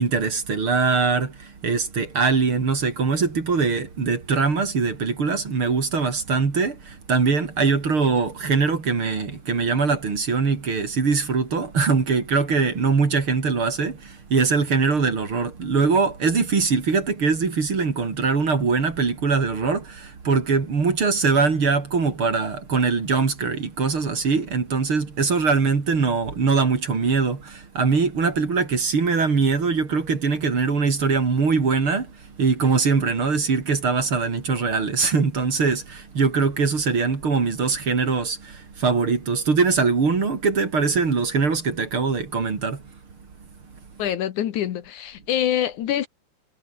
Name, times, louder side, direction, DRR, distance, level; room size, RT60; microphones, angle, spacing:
voice 1, 0.0-42.8, right 4 dB, 40° right, 3.7 m, -22 dB
voice 2, 44.0-46.1, left 10 dB, 70° left, 2.7 m, -25 dB
omnidirectional pair, 3.7 m